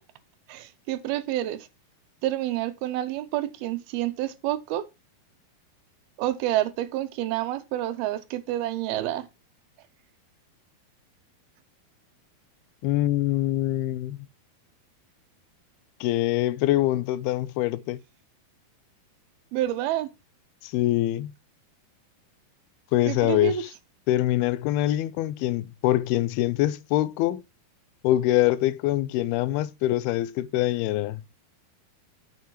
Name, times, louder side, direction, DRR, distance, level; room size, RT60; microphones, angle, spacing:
voice 1, 0.5-1.7 2.2-4.9 6.2-9.3 19.5-20.1 23.1-23.5, right 13 dB, 80° right, 2.7 m, -28 dB
voice 2, 12.8-14.3 16.0-18.0 20.6-21.3 22.9-23.7 24.1-27.4 28.0-31.2, left 15 dB, 85° left, 2.5 m, -24 dB
9.1 x 6.6 x 3.0 m
omnidirectional pair, 4.5 m